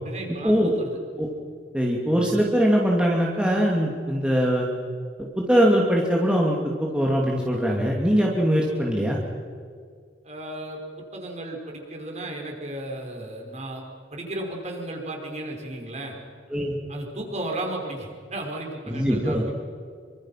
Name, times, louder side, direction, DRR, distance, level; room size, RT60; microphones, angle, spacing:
voice 1, 0.0-1.0 10.2-10.8 11.1-13.8 14.1-16.1 16.9-19.5, right 1 dB, 40° right, 1 dB, 5.6 m, -34 dB
voice 2, 1.7-4.7 5.4-9.2 16.5-16.8 18.9-19.5, equal, 5° right, -2 dB, 2.7 m, -22 dB
26.5 x 25.0 x 5.9 m, 2.1 s
head